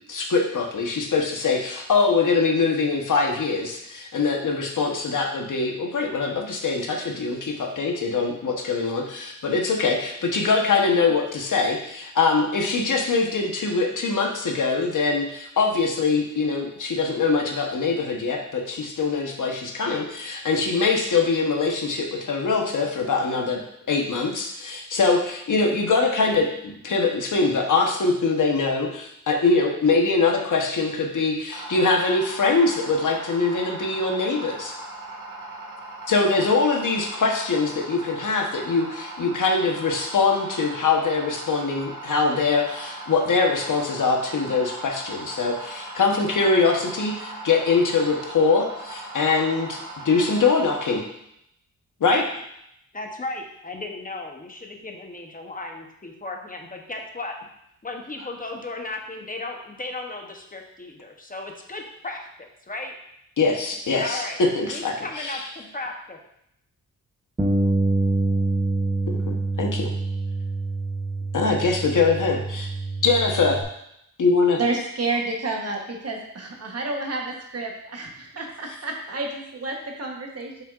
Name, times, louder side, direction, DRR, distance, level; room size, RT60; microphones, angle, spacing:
voice 1, 0.1-23.6 23.9-34.7 36.1-49.8 50.0-51.0 52.0-52.2 63.4-65.4 69.1-69.9 71.3-72.7 73.0-73.6 74.2-74.6, left 4 dB, 65° left, 2 dB, 1.0 m, -23 dB
sound 1, 31.5-51.0, right 2 dB, 75° right, 1.4 m, -38 dB
voice 2, 52.9-57.4 57.8-62.9 64.0-64.4 64.7-66.2 78.3-78.4, left 2 dB, 25° left, 2 dB, 0.8 m, -35 dB
Bass guitar, 67.4-73.6, right 2 dB, 15° right, 0.6 m, -26 dB
voice 3, 74.6-80.6, right 3 dB, 45° right, 1 dB, 1.1 m, -30 dB
7.2 x 5.7 x 2.4 m, 0.76 s
wide cardioid pair, 120°, 34 cm